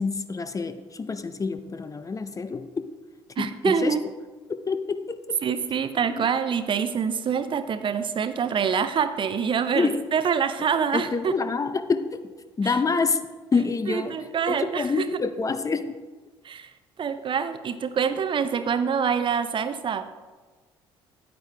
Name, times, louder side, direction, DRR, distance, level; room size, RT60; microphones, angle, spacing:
voice 1, 0.0-2.9 3.4-4.0 4.5-5.4 6.2-6.3 9.7-10.1 10.9-12.3 12.6-16.0, left 4 dB, 25° left, 11 dB, 0.5 m, -27 dB
voice 2, 3.4-4.0 5.4-11.3 12.6-12.8 13.9-15.1 16.4-16.7 17.0-20.1, right 7 dB, 35° right, 11 dB, 0.6 m, -26 dB
9.2 x 9.2 x 3.3 m, 1.3 s
figure-of-eight pair, 55°, 14 cm